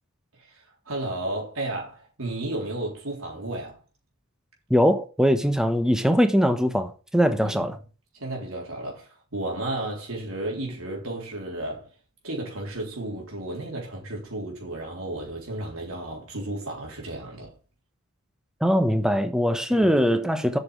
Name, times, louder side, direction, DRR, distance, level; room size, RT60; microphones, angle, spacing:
voice 1, 0.4-3.8 7.4-7.7 8.1-11.9 12.2-17.5 19.7-19.9, right 1 dB, 75° right, 3.8 m, -33 dB
voice 2, 4.7-7.8 18.6-20.6, equal, 5° right, 1.0 m, -21 dB
8.5 x 6.4 x 6.3 m
head